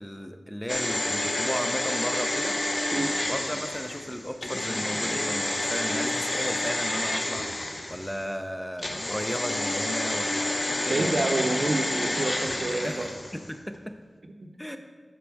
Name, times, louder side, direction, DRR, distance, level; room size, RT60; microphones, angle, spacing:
voice 1, 0.0-2.6 3.3-7.5 7.9-11.1 12.8-13.0 13.3-14.0 14.6-14.8, equal, 10° left, 7 dB, 0.5 m, -35 dB
sound 1, 0.7-8.3 8.8-13.5 13.7-13.8, left 1 dB, 50° left, 0.7 m, -29 dB
voice 2, 10.7-12.9 14.4-14.5, right 2 dB, 60° right, 5 dB, 0.6 m, -28 dB
6.9 x 5.2 x 4.6 m, 1.4 s
wide cardioid pair, 60°, 0 cm